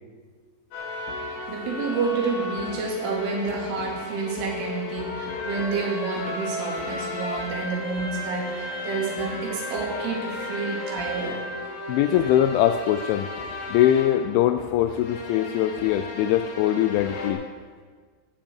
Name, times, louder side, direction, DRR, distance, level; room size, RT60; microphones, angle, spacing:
sound 1, 0.7-17.3, left 2 dB, 60° left, 3.9 m, -34 dB
voice 1, 1.5-11.4, right 4 dB, 75° right, -2 dB, 5.1 m, -29 dB
voice 2, 11.9-13.3 13.7-17.4, left 11 dB, 85° left, 8 dB, 2.8 m, -22 dB
17.0 x 11.0 x 4.7 m, 1.5 s
omnidirectional pair, 5.7 m